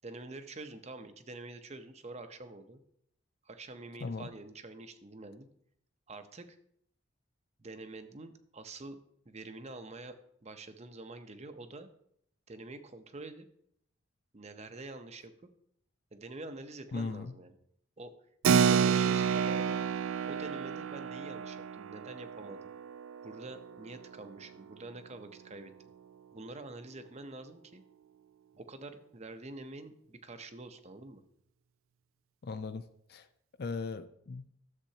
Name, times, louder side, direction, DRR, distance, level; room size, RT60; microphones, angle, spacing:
voice 1, 0.0-2.8 3.4-5.5 6.1-6.6 7.6-9.0 9.3-11.9 12.5-13.5 14.3-15.3 16.1-17.5 18.0-18.1 18.5-19.8 20.2-22.6 23.2-25.7 26.3-27.8 28.6-31.2, right 2 dB, 30° right, 9 dB, 0.7 m, -46 dB
voice 2, 4.0-4.3 16.9-17.3 32.4-33.3 33.6-34.4, left 4 dB, 50° left, 11 dB, 0.4 m, -38 dB
Keyboard (musical), 18.4-24.5, right 7 dB, 75° right, 0.4 m, -30 dB
13.0 x 7.4 x 2.8 m, 0.70 s
head